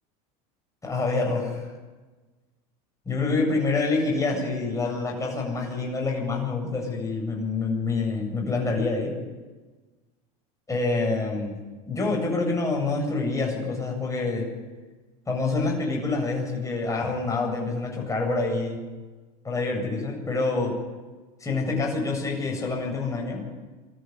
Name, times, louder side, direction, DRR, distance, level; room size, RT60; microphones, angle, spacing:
voice 1, 0.8-1.7 3.1-9.1 10.7-11.6 11.9-14.5 15.3-18.8 19.4-20.8 21.4-23.5, left 3 dB, 15° left, -1 dB, 8.0 m, -27 dB
24.5 x 13.5 x 9.8 m, 1.3 s
supercardioid pair, 110°, 20 cm